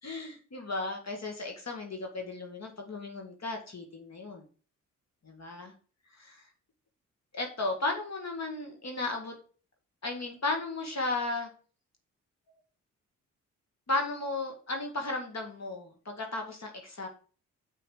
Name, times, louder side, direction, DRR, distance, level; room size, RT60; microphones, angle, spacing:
voice 1, 0.0-4.5 5.2-5.7 6.1-6.5 7.3-9.4 10.0-11.5 13.9-17.1, left 2 dB, 40° left, 3 dB, 2.0 m, -35 dB
7.1 x 5.9 x 4.9 m, 0.39 s
hypercardioid pair, 40°, 40 cm